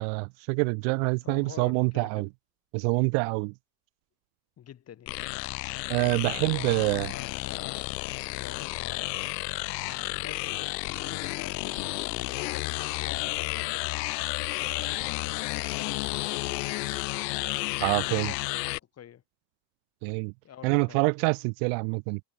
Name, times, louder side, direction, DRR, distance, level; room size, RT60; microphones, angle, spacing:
voice 1, 0.0-2.3 2.7-3.5 5.9-7.1 17.8-18.3 20.0-20.3 20.6-22.2, right 40 dB or more, 55° right, 0.6 m, -26 dB
voice 2, 1.2-2.3 4.6-5.2 6.0-14.1 14.4-16.9 17.8-19.2 20.4-21.1, left 10 dB, 30° left, 3.1 m, -48 dB
sound 1, 5.1-18.8, left 24 dB, 80° left, 0.8 m, -32 dB
supercardioid pair, 130°, 49 cm